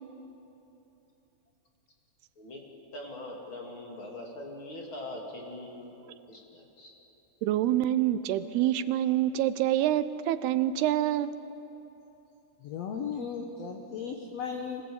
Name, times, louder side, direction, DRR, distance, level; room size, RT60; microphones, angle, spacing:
voice 1, 2.9-5.9 6.3-6.9, left 1 dB, 35° left, 0 dB, 2.9 m, -42 dB
voice 2, 7.4-11.3, right 12 dB, 80° right, 13 dB, 2.7 m, -26 dB
voice 3, 12.6-14.8, left 6 dB, 75° left, 4 dB, 1.5 m, -36 dB
25.0 x 18.5 x 8.8 m, 3.0 s
omnidirectional pair, 4.6 m